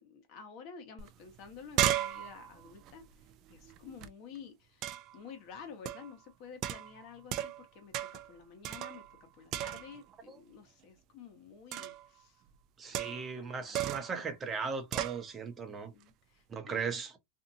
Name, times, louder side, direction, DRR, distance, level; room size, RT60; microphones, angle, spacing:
voice 1, 0.0-7.9 8.3-9.0 9.3-12.4 12.9-13.9 15.6-17.0, left 6 dB, 50° left, 1.1 m, -51 dB
sound 1, 1.0-1.1 1.4-4.1 4.8-5.2 5.9-6.1 6.6-7.7 7.9-8.3 8.6-9.2 9.5-10.1 11.7-12.1 12.9-13.4 13.7-14.2 14.9-15.2, right 12 dB, 45° right, 0.4 m, -35 dB
voice 2, 12.8-15.9 16.5-17.1, right 5 dB, 25° right, 0.8 m, -37 dB
2.7 x 2.5 x 2.5 m
supercardioid pair, 135°, 0 cm